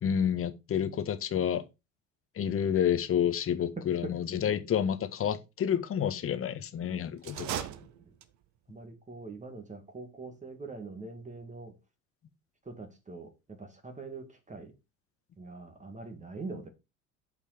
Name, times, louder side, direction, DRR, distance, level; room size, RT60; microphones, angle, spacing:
voice 1, 0.0-1.6 2.3-7.7, left 9 dB, 35° left, 1.5 m, -29 dB
voice 2, 3.8-4.2 7.5-7.8 8.7-11.8 12.6-14.7 15.4-16.7, right 3 dB, 20° right, 2.3 m, -43 dB
sound 1, 7.2-8.6, right 11 dB, 45° right, 1.1 m, -38 dB
8.3 x 5.5 x 5.0 m
hypercardioid pair, 70°, 38 cm